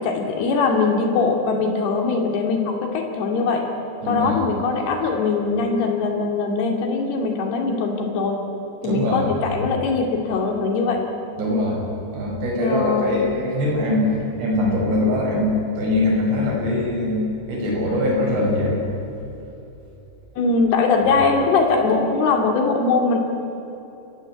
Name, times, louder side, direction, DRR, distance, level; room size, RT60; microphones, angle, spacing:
voice 1, 0.0-3.7 4.1-8.4 8.8-11.0 12.6-13.4 20.4-23.2, left 4 dB, 55° left, 2 dB, 4.0 m, -21 dB
voice 2, 4.0-4.3 8.8-9.3 9.5-9.6 11.4-11.8 12.1-18.8, left 1 dB, 55° right, -3 dB, 7.9 m, -22 dB
28.5 x 15.0 x 9.0 m, 3.0 s
omnidirectional pair, 5.9 m